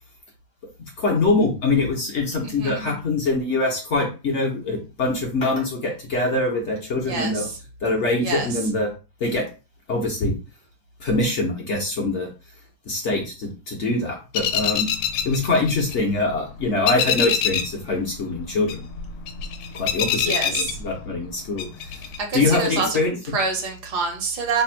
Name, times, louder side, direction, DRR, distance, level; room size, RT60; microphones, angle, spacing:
voice 1, 0.8-7.5 7.8-8.9 9.2-9.5 9.9-10.4 11.0-12.3 12.9-14.9 15.2-18.8 19.7-22.0 22.3-23.4, left 2 dB, 55° left, 0 dB, 0.8 m, -24 dB
voice 2, 2.4-2.8 7.1-7.6 8.2-8.5 20.2-20.8 22.2-23.0 23.3-24.6, right 4 dB, 65° right, 3 dB, 1.3 m, -26 dB
sound 1, 14.3-16.3 16.6-17.8 18.1-21.3 21.6-22.2, left 8 dB, 85° left, 1.3 m, -25 dB
3.3 x 2.2 x 4.3 m, 0.31 s
omnidirectional pair, 2.0 m